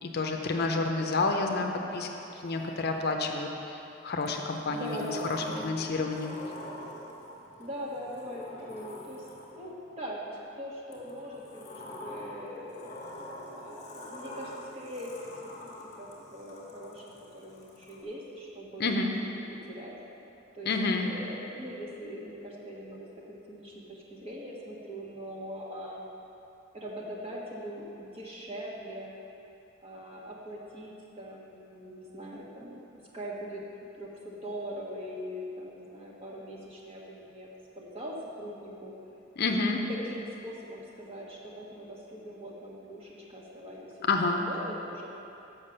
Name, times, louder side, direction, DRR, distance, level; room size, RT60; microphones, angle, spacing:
voice 1, 0.0-2.1 2.4-3.8 4.0-6.4 18.8-19.1 20.7-21.1 39.4-39.8 44.1-44.4, left 3 dB, 55° left, 3 dB, 0.6 m, -29 dB
Sliding door, 1.9-3.3 4.2-9.8 10.9-18.0, left 1 dB, 35° left, 1.6 m, -46 dB
voice 2, 4.7-5.7 7.6-12.9 13.5-19.4 19.7-20.0 20.5-20.7 21.0-26.0 26.7-29.1 29.8-32.8 33.1-33.6 34.0-38.9 39.7-45.1, equal, 30° right, -4 dB, 1.4 m, -41 dB
7.2 x 5.8 x 6.6 m, 2.9 s
head